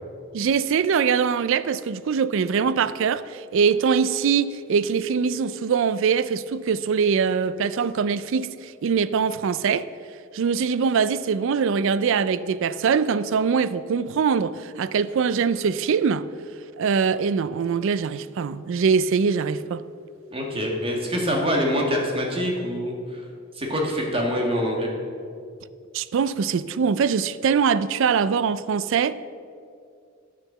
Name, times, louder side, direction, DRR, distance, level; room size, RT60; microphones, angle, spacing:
voice 1, 0.3-9.9 10.3-16.3 16.8-19.8 25.9-29.1, right 6 dB, 65° right, 0.4 m, -23 dB
voice 2, 20.3-23.2 23.6-24.9, equal, 30° right, 1.9 m, -25 dB
10.0 x 7.1 x 6.8 m
head